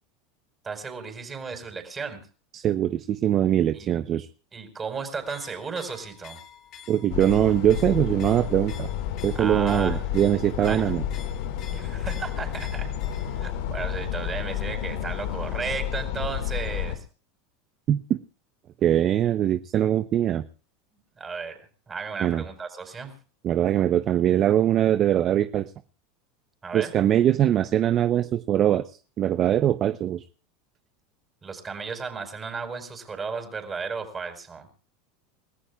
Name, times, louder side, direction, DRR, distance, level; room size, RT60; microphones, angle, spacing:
voice 1, 0.6-2.2 3.7-3.9 4.5-6.4 9.3-10.0 10.6-10.9 11.7-12.9 13.3-17.0 21.2-21.6 21.9-23.1 26.6-26.9 31.4-34.7, right 5 dB, 20° right, 6 dB, 4.8 m, -34 dB
voice 2, 2.5-4.3 6.9-8.9 9.2-11.0 17.9-18.2 18.8-20.4 22.2-22.4 23.4-25.7 26.7-30.2, right 11 dB, 40° right, 12 dB, 0.8 m, -22 dB
sound 1, 5.2-13.5, left 8 dB, 50° left, 3.0 m, -48 dB
sound 2, 7.1-17.0, left 10 dB, 70° left, 1.9 m, -31 dB
29.5 x 14.5 x 2.4 m, 0.37 s
hypercardioid pair, 105°, 0 cm